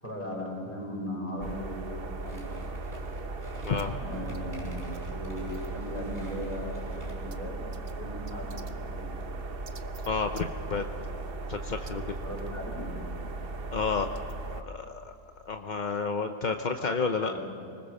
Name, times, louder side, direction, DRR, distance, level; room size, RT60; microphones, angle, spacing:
voice 1, 0.0-2.5 4.0-4.7 5.0-7.6 8.0-9.0 12.2-13.0 17.1-17.4, equal, 10° left, -3 dB, 6.1 m, -38 dB
sound 1, 1.4-14.6, right 2 dB, 40° right, 1.0 m, -37 dB
sound 2, 2.2-7.4, equal, 15° right, 5.2 m, -46 dB
voice 2, 3.6-3.9 10.0-10.8 11.5-12.0 13.7-14.1 14.5-15.1 15.5-17.4, left 5 dB, 45° left, 5 dB, 0.6 m, -30 dB
25.0 x 20.5 x 6.6 m, 2.7 s
omnidirectional pair, 1.8 m